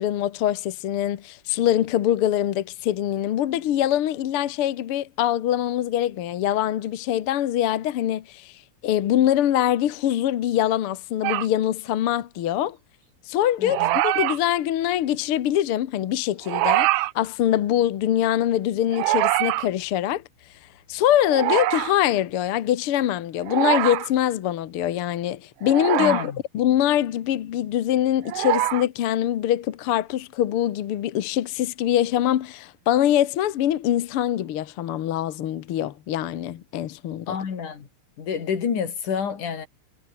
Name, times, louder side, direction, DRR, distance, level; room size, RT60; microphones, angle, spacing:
voice 1, 0.0-12.8 13.3-20.2 20.9-37.4, left 12 dB, 60° left, 1.6 m, -23 dB
sound 1, 11.2-11.5 13.6-14.4 16.4-17.1 18.9-19.7 21.3-21.9 23.4-24.1 25.6-26.3 28.3-28.8, right 18 dB, 90° right, 2.3 m, -23 dB
voice 2, 13.6-14.0 26.0-26.4 37.3-37.9 38.2-39.7, left 7 dB, 75° left, 4.7 m, -28 dB
omnidirectional pair, 3.6 m